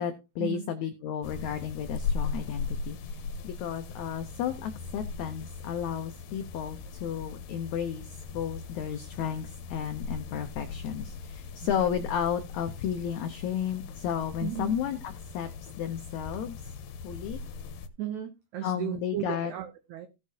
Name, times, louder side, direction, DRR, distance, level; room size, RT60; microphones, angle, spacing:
voice 1, 0.0-16.7 17.0-17.4 18.6-19.5, left 9 dB, 90° left, 1.6 m, -33 dB
sound 1, 1.2-17.9, left 4 dB, 75° left, 2.3 m, -39 dB
voice 2, 11.6-12.1 14.4-14.8 18.0-20.1, right 12 dB, 85° right, 1.6 m, -36 dB
16.5 x 6.4 x 2.8 m
omnidirectional pair, 4.3 m